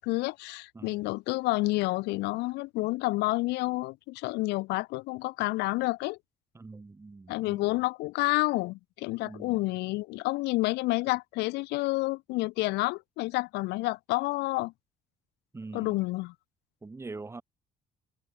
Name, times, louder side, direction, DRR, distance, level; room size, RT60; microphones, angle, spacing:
voice 1, 0.0-6.2 7.3-14.7 15.7-16.3, left 21 dB, 85° left, 0.5 m, -29 dB
voice 2, 6.5-7.8 9.2-9.7 15.5-16.0 16.8-17.4, right 3 dB, 15° right, 0.8 m, -44 dB
cardioid pair, 110°, 17 cm